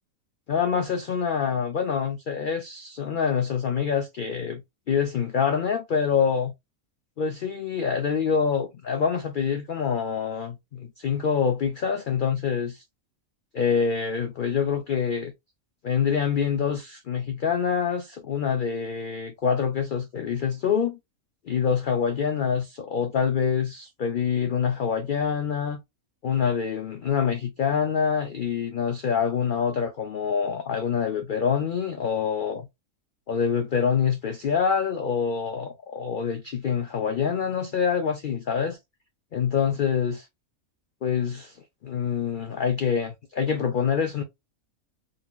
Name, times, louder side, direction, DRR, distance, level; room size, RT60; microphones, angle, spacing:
voice 1, 0.5-4.6 4.9-6.5 7.2-12.8 13.5-15.3 15.8-21.0 21.5-25.8 26.2-32.7 33.3-38.8 39.3-40.3 41.0-41.6 41.8-44.2, left 7 dB, 65° left, 0.5 m, -26 dB
4.0 x 2.8 x 2.3 m
omnidirectional pair, 1.4 m